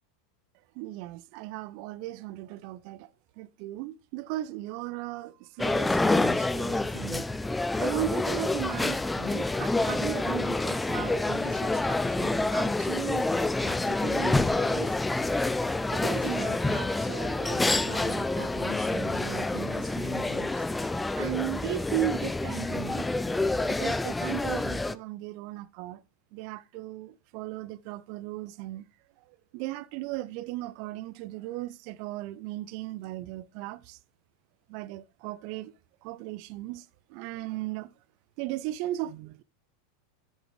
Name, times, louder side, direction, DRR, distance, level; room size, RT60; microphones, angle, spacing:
voice 1, 0.8-3.1 3.4-7.2 7.8-14.9 15.9-20.6 21.1-23.1 23.6-26.0 26.3-28.8 29.5-34.0 34.7-35.7 36.0-37.9 38.4-39.4, right 16 dB, 50° right, 0.5 m, -37 dB
sound 1, 5.6-24.9, left 2 dB, 10° left, 0.4 m, -28 dB
8.7 x 8.1 x 3.2 m
figure-of-eight pair, 85°, 0 cm